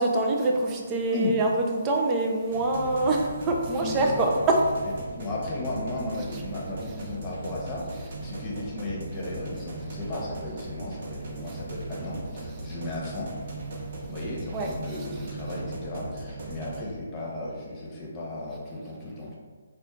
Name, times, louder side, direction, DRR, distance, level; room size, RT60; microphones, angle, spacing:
voice 1, 0.0-4.6 14.5-14.7, right 2 dB, 20° right, 1 dB, 0.5 m, -25 dB
sound 1, 2.5-16.8, right 2 dB, 50° right, 0.9 m, -38 dB
voice 2, 3.8-4.3 5.0-13.3 14.0-19.4, left 2 dB, 20° left, -4 dB, 1.0 m, -35 dB
4.3 x 2.4 x 3.7 m, 1.6 s
figure-of-eight pair, 145°, 0 cm